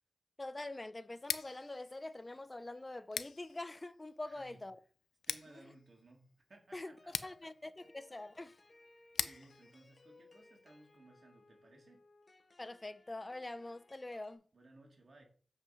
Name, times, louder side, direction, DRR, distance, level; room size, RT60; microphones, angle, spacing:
voice 1, 0.4-4.8 5.5-5.6 6.7-8.5 9.2-9.4 12.6-14.4, left 2 dB, 25° left, 0.7 m, -45 dB
Scissors, 1.1-11.0, left 6 dB, 90° left, 0.5 m, -46 dB
voice 2, 4.2-4.6 5.3-7.5 9.0-12.0 14.5-15.2, right 2 dB, 55° right, 3.2 m, -61 dB
sound 1, 7.0-14.3, left 2 dB, 45° left, 1.2 m, -64 dB
7.6 x 5.7 x 5.4 m
cardioid pair, 55°, 0 cm